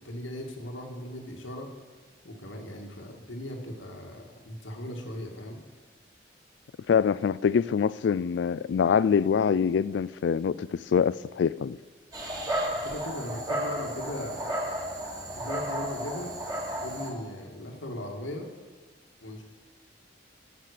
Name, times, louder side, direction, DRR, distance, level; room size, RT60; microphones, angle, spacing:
voice 1, 0.0-1.7 2.2-5.6 12.8-14.6 15.3-16.3 16.8-18.5 19.2-19.4, left 1 dB, 85° left, 2.0 m, -38 dB
voice 2, 6.9-11.8, left 6 dB, 65° left, 0.3 m, -25 dB
Dog, 12.1-17.1, right 1 dB, 20° right, 1.8 m, -33 dB
12.0 x 7.6 x 6.7 m
head